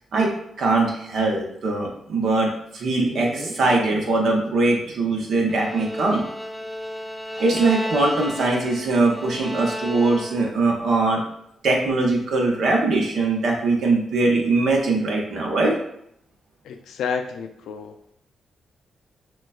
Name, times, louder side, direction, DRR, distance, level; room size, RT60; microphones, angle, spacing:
voice 1, 0.1-6.2 7.4-11.2 11.6-15.8, right 3 dB, 70° right, 0 dB, 0.9 m, -21 dB
Dog, 3.1-5.8 6.1-6.2 7.3-7.9 10.0-10.1, right 2 dB, 45° right, 0.9 m, -38 dB
Bowed string instrument, 5.5-10.6, equal, 5° right, 0.8 m, -33 dB
voice 2, 16.6-18.1, left 6 dB, 80° left, 6 dB, 0.4 m, -30 dB
6.2 x 2.3 x 2.3 m, 0.72 s
supercardioid pair, 50°, 0 cm